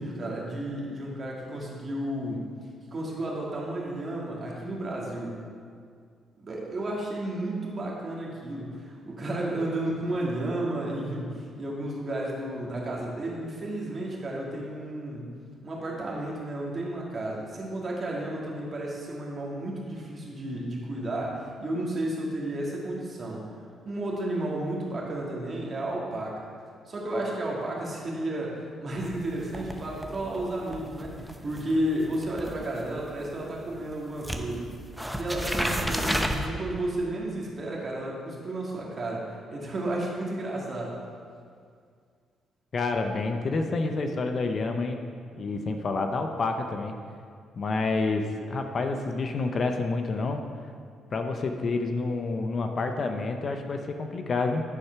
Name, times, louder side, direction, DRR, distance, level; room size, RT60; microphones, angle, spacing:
voice 1, 0.0-2.5 2.9-5.4 6.4-15.3 15.6-23.4 23.8-26.5 26.9-31.1 31.4-34.7 35.1-41.0, right 1 dB, 40° right, -3 dB, 2.1 m, -32 dB
sound 1, 29.0-33.9 34.2-36.5, equal, ahead, 0.8 m, -33 dB
voice 2, 42.7-45.0 45.3-47.0 47.6-50.4 51.1-54.6, left 3 dB, 45° left, 5 dB, 0.7 m, -28 dB
9.9 x 4.3 x 5.8 m, 2.2 s
cardioid pair, 90°, 0 cm